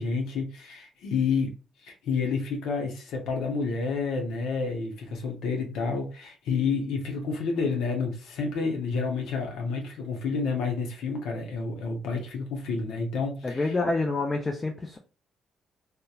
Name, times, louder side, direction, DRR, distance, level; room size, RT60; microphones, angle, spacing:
voice 1, 0.0-1.5 1.8-13.7, left 4 dB, 85° left, 0.7 m, -29 dB
voice 2, 13.4-15.0, left 3 dB, 25° left, 0.4 m, -27 dB
2.8 x 2.1 x 2.3 m
cardioid pair, 90°, 0 cm